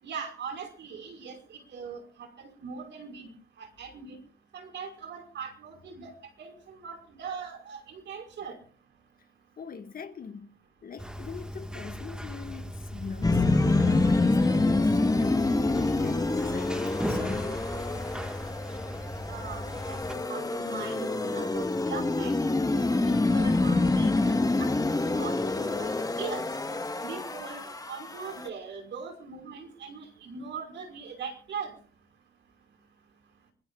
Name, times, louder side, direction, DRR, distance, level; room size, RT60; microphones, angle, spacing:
voice 1, 0.0-3.3 3.6-4.2 4.5-8.6 19.3-20.0 20.3-22.3 23.0-24.7 25.0-25.9 26.2-26.5 27.0-31.7, right 6 dB, 65° right, 5.5 m, -40 dB
voice 2, 9.6-13.4 13.9-17.6, left 6 dB, 45° left, 1.8 m, -42 dB
sound 1, 11.0-20.1, equal, 5° right, 1.7 m, -37 dB
sound 2, 13.2-28.5, left 2 dB, 20° left, 1.5 m, -27 dB
24.0 x 21.0 x 2.5 m
cardioid pair, 90°, 20 cm